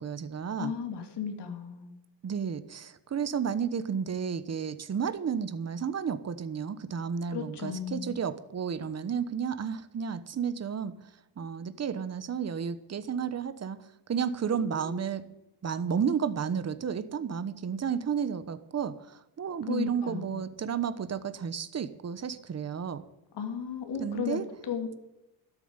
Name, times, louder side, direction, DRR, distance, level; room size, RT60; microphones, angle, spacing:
voice 1, 0.0-0.7 2.2-11.1 11.4-13.8 14.1-15.2 15.6-23.0 24.0-24.4, right 7 dB, 35° right, 12 dB, 1.1 m, -32 dB
voice 2, 0.6-1.9 7.3-8.1 14.6-14.9 19.7-20.4 23.3-25.0, left 7 dB, 65° left, 5 dB, 2.5 m, -35 dB
13.0 x 7.0 x 9.7 m, 0.95 s
cardioid pair, 120°, 43 cm